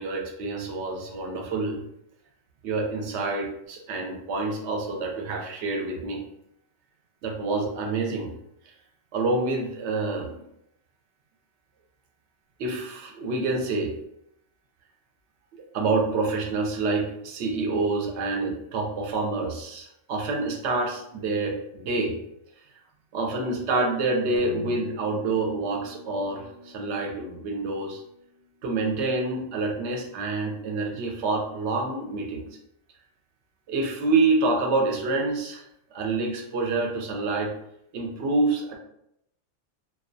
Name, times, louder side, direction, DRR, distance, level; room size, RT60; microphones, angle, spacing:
voice 1, 0.0-1.8 2.6-6.2 7.2-8.3 8.6-8.7 9.1-10.4 12.6-13.9 15.5-22.2 23.1-28.0 28.6-32.5 33.7-35.6 35.9-37.5 37.9-38.8, right 3 dB, 70° right, 0 dB, 0.8 m, -27 dB
sound 1, 24.4-29.0, left 3 dB, 65° left, 0.7 m, -44 dB
2.3 x 2.2 x 2.5 m, 0.77 s
omnidirectional pair, 1.3 m